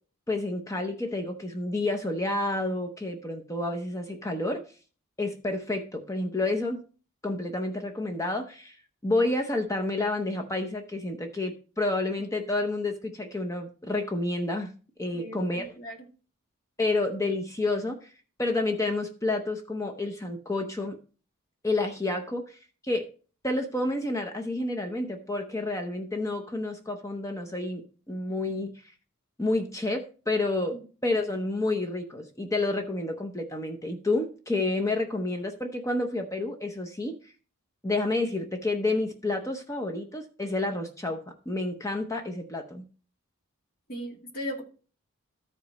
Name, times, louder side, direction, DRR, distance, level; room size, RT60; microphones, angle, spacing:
voice 1, 0.3-4.6 5.2-6.8 7.2-8.8 9.0-14.7 15.0-15.7 16.8-18.1 18.4-21.0 21.6-22.6 22.8-23.0 23.4-28.7 29.4-30.8 31.0-37.3 37.8-42.9, left 2 dB, 15° left, 4 dB, 0.7 m, -29 dB
voice 2, 15.1-16.1 30.7-30.8 43.9-44.6, equal, 40° left, 0 dB, 2.1 m, -37 dB
13.0 x 5.0 x 4.1 m, 0.38 s
head